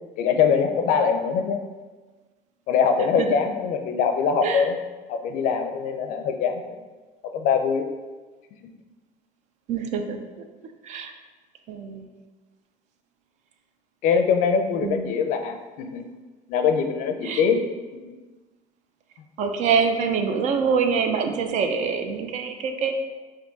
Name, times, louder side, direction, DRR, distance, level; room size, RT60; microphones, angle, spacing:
voice 1, 0.2-1.6 2.7-4.7 5.1-6.8 7.2-7.9 14.0-16.1 16.5-17.6 18.0-18.1, left 6 dB, 65° left, 6 dB, 0.4 m, -23 dB
voice 2, 9.7-10.2 10.8-11.1 11.7-12.1 14.8-15.1 17.2-17.4 19.4-22.9, right 6 dB, 55° right, 6 dB, 0.4 m, -25 dB
3.5 x 2.6 x 3.9 m, 1.3 s
cardioid pair, 125°, 14 cm